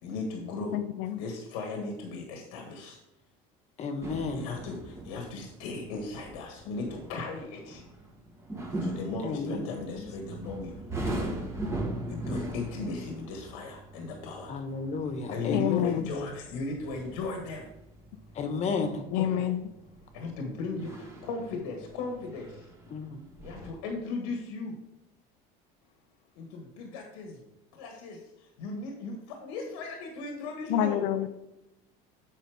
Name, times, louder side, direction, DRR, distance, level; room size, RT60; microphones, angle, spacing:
voice 1, 0.0-0.8 1.1-3.0 4.1-7.8 8.8-10.8 11.0-11.4 12.1-14.6 15.3-17.7 19.2-19.5 20.1-22.7 23.4-24.7 26.4-27.4 27.7-31.1, left 3 dB, 90° left, 2 dB, 1.6 m, -37 dB
voice 2, 0.7-1.2 15.5-16.1 19.1-19.6 30.7-31.3, left 11 dB, 75° left, 6 dB, 0.6 m, -27 dB
voice 3, 3.8-4.5 9.2-9.6 14.5-15.8 18.4-19.0 22.9-23.1, left 4 dB, 40° left, 6 dB, 1.3 m, -32 dB
sound 1, 4.0-23.7, right 1 dB, 15° right, 1.6 m, -40 dB
8.3 x 5.6 x 5.0 m, 0.96 s
cardioid pair, 125°, 17 cm